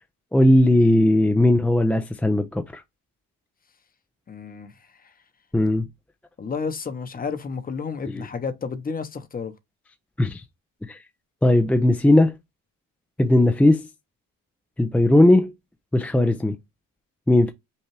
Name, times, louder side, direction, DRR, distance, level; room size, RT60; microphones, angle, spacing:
voice 1, 0.3-2.8 5.5-5.8 10.2-10.4 10.9-11.0 11.4-12.3 13.2-13.9 14.8-15.5 15.9-16.6 17.3-17.5, left 1 dB, 5° left, 0.3 m, -18 dB
voice 2, 4.3-4.7 6.4-9.5, left 5 dB, 25° left, 0.7 m, -31 dB
5.4 x 2.4 x 3.1 m
cardioid pair, 115°, 34 cm